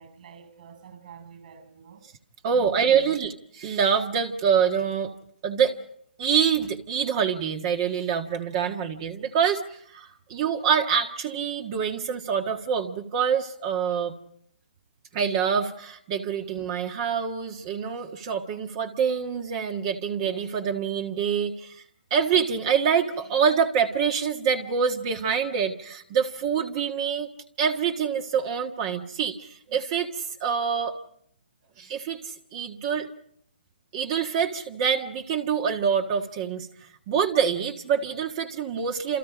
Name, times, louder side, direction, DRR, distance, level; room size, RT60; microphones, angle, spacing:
voice 1, 0.0-2.1 2.4-3.2, right 7 dB, 50° right, 6.8 m, -48 dB
voice 2, 2.4-5.1 5.4-5.7 6.2-14.1 15.1-21.8 22.1-27.3 27.6-30.9 31.8-33.1 33.9-39.2, right 7 dB, 30° right, 1.6 m, -26 dB
30.0 x 28.0 x 5.1 m
hypercardioid pair, 155°, 6 cm